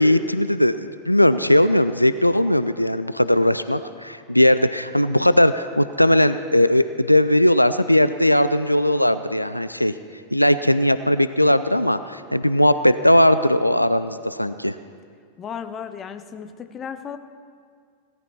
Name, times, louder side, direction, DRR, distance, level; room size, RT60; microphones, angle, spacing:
voice 1, 0.0-9.9 10.3-14.8, left 1 dB, 90° left, 13 dB, 0.3 m, -18 dB
voice 2, 15.4-17.2, left 7 dB, 25° left, 10 dB, 0.7 m, -34 dB
17.5 x 13.5 x 4.2 m, 2.1 s
figure-of-eight pair, 90°, 0 cm